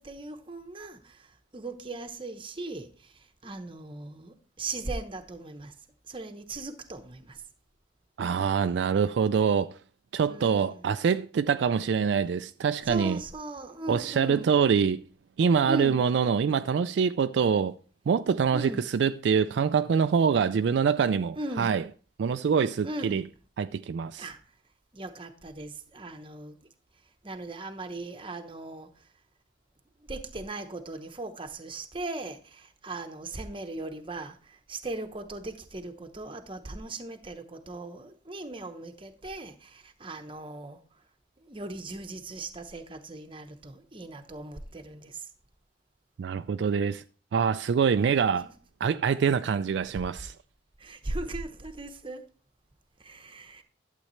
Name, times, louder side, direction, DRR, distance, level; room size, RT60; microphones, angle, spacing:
voice 1, 0.0-5.7 6.1-7.4 10.3-10.8 12.8-14.5 15.6-16.0 18.5-18.8 21.3-21.7 22.8-23.2 24.2-24.4 24.9-26.6 27.2-29.1 30.0-41.0 41.4-45.3 50.8-52.2 53.0-53.6, right 2 dB, 25° right, 0.9 m, -38 dB
voice 2, 8.2-9.8 10.1-13.2 13.9-15.1 15.4-17.8 18.1-21.8 22.2-23.2 23.6-24.3 46.2-47.0 47.3-48.5 48.8-50.3, right 6 dB, 65° right, 0.3 m, -25 dB
11.5 x 7.6 x 3.1 m
head